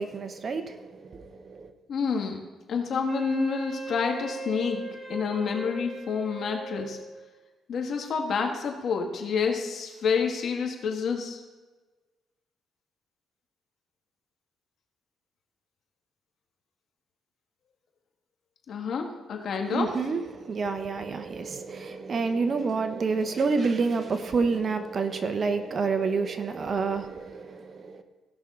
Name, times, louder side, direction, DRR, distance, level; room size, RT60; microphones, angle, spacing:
voice 1, 0.0-1.7 19.7-28.0, right 4 dB, 45° right, 0.9 m, -28 dB
voice 2, 1.9-2.4 2.7-4.8 5.1-7.0 7.7-11.4 18.7-19.9, left 5 dB, 60° left, 1.7 m, -28 dB
Wind instrument woodwind instrument, 3.1-7.3, right 3 dB, 5° right, 3.8 m, -39 dB
16.5 x 6.1 x 3.8 m
cardioid pair, 90°, 0 cm